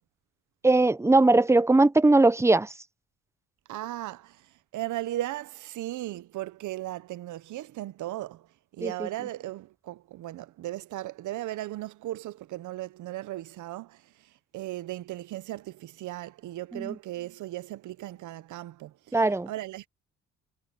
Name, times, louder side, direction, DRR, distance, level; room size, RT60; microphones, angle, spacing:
voice 1, 0.6-2.7 8.8-9.1 16.7-17.0 19.1-19.5, right 2 dB, 10° right, 0.7 m, -20 dB
voice 2, 3.7-19.2 19.5-19.9, right 15 dB, 80° right, 0.9 m, -37 dB
cardioid pair, 90°, 30 cm